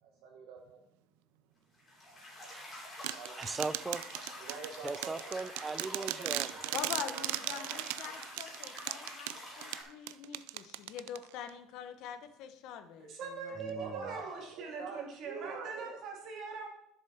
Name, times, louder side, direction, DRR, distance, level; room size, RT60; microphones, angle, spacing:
voice 1, 0.0-0.8 2.1-2.5 3.1-3.5 4.4-5.4 5.8-6.8 7.0-8.1 13.8-16.0, right 6 dB, 60° right, 1 dB, 1.4 m, -46 dB
sound 1, 1.7-9.8, left 1 dB, 15° left, 2.9 m, -47 dB
voice 2, 2.5-2.9 3.4-4.0 4.8-6.6 13.6-14.1, right 4 dB, 10° right, 15 dB, 0.4 m, -39 dB
sound 2, 3.0-11.5, right 18 dB, 85° right, 0.4 m, -38 dB
voice 3, 6.7-14.2, left 9 dB, 50° left, 9 dB, 0.9 m, -44 dB
voice 4, 13.0-16.7, right 4 dB, 40° right, 1 dB, 2.4 m, -42 dB
11.0 x 7.0 x 4.2 m, 0.75 s
cardioid pair, 175°, 0 cm